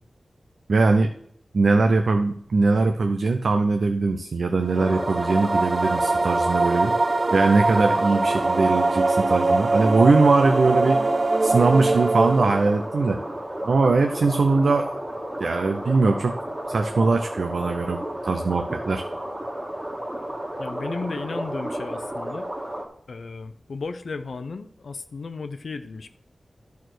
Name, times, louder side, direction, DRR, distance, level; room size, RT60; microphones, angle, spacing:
voice 1, 0.7-1.1 1.5-6.9 7.3-11.0 11.4-13.2 13.6-14.9 15.4-16.3 16.7-19.0, right 3 dB, 70° right, 6 dB, 0.6 m, -21 dB
sound 1, 4.7-22.9, right 1 dB, 20° right, 1.8 m, -32 dB
sound 2, 4.7-12.9, right 3 dB, 40° right, 0.3 m, -23 dB
voice 2, 20.6-22.5 23.1-26.1, left 4 dB, 70° left, 9 dB, 0.6 m, -34 dB
11.5 x 4.7 x 6.3 m, 0.66 s
wide cardioid pair, 95°, 0 cm